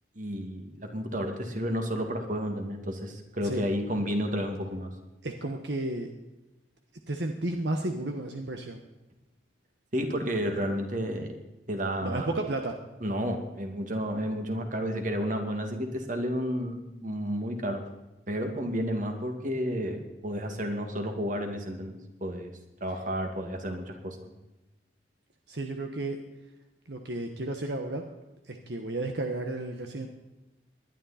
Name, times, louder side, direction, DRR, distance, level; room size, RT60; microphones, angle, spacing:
voice 1, 0.2-4.9 9.9-11.3 11.7-12.3 13.0-17.8 18.3-22.5 22.8-24.3, equal, 45° right, 4 dB, 2.3 m, -31 dB
voice 2, 5.2-6.1 7.1-8.8 12.0-12.8 25.5-26.2 26.9-28.0 28.4-30.1, right 2 dB, 70° right, 4 dB, 1.3 m, -32 dB
20.0 x 12.0 x 4.3 m, 1.0 s
head